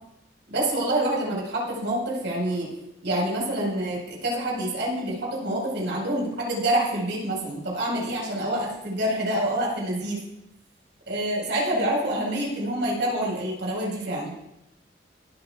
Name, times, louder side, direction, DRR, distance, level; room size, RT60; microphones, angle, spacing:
voice 1, 0.5-2.7 3.0-10.2 11.1-14.3, right 1 dB, 75° right, -3 dB, 4.9 m, -27 dB
23.5 x 9.3 x 2.4 m, 0.86 s
head